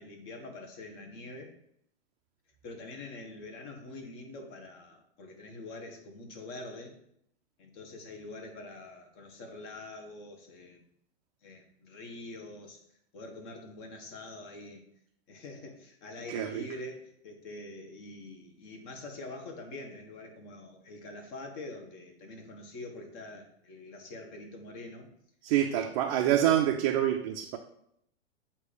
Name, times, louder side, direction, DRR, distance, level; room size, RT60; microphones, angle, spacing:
voice 1, 0.0-1.5 2.6-7.0 7.6-10.9 11.4-12.8 13.1-14.8 15.3-25.1 25.7-26.0, left 2 dB, 45° left, 4 dB, 1.4 m, -45 dB
voice 2, 16.3-16.6 25.4-27.6, right 11 dB, 35° right, 3 dB, 0.4 m, -26 dB
7.9 x 2.8 x 5.0 m, 0.72 s
hypercardioid pair, 130°, 34 cm